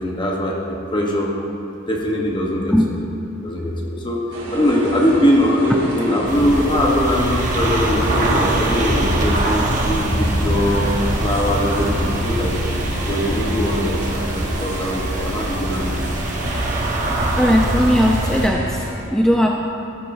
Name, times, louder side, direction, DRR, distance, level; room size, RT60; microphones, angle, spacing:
voice 1, 0.0-1.3 1.9-3.0 3.4-12.6 13.1-16.1, equal, 25° left, -2 dB, 1.0 m, -21 dB
sound 1, 4.3-18.9, right 1 dB, 90° right, 2.5 m, -31 dB
sound 2, 6.3-18.5, right 1 dB, 40° right, 1.2 m, -23 dB
voice 2, 17.4-18.8 19.1-19.5, equal, 5° left, -1 dB, 0.4 m, -17 dB
14.5 x 8.4 x 2.7 m, 2.7 s
head